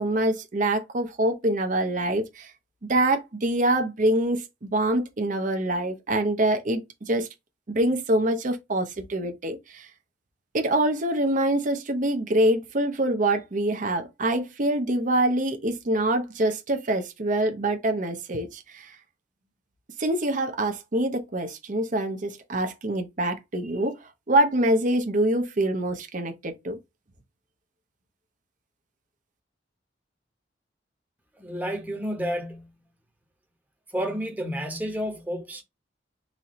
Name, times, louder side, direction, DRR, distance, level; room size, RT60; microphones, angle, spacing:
voice 1, 0.0-2.5 2.9-6.8 7.1-7.3 7.7-9.9 10.5-19.0 20.0-26.8, right 1 dB, 45° right, 0.7 m, -25 dB
voice 2, 31.4-32.7 33.9-35.6, equal, 10° right, 1.0 m, -30 dB
4.1 x 2.7 x 3.0 m
head